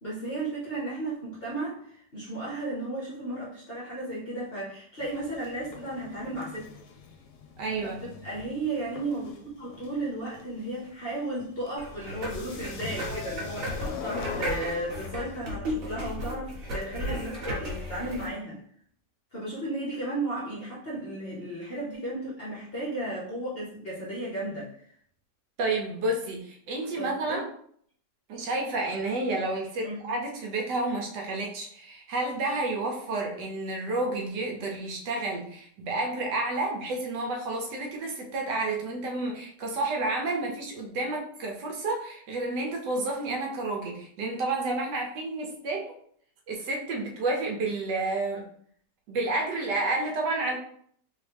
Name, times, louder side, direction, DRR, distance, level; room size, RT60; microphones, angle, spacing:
voice 1, 0.0-6.7 7.8-18.6 19.3-24.7 27.0-27.4 29.8-30.0, right 2 dB, 45° left, -6 dB, 0.8 m, -34 dB
sound 1, 5.0-15.5, left 6 dB, 70° left, 1.1 m, -42 dB
voice 2, 7.6-8.0 25.6-27.5 28.3-45.9 46.5-48.4 49.1-50.6, right 2 dB, 75° right, 0 dB, 1.3 m, -30 dB
sound 2, 11.8-18.3, equal, 55° right, 1.4 m, -35 dB
3.2 x 3.1 x 3.3 m, 0.63 s
omnidirectional pair, 1.9 m